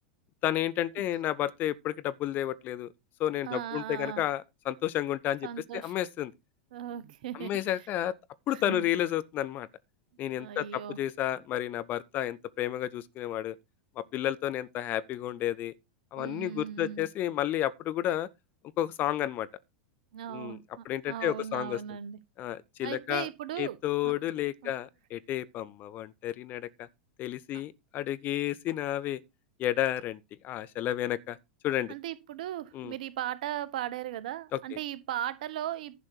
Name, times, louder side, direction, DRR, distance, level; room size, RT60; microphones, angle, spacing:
voice 1, 0.4-2.9 3.2-5.5 5.7-6.3 7.4-8.1 8.5-9.7 10.2-13.6 14.0-15.7 16.1-18.3 18.8-19.5 20.3-20.6 20.9-21.8 22.4-23.3 23.6-26.9 27.2-29.2 29.6-31.4 31.6-31.9 32.7-32.9 34.5-34.6, left 13 dB, 40° left, 0.8 m, -31 dB
voice 2, 3.4-4.2 5.4-5.9 6.7-7.9 8.5-8.9 10.4-11.0 16.2-17.1 20.1-22.2 22.8-23.8 24.0-24.1 24.6-24.7 31.9-36.0, right 11 dB, 60° right, 1.1 m, -37 dB
11.0 x 6.5 x 4.5 m
figure-of-eight pair, 90°, 5 cm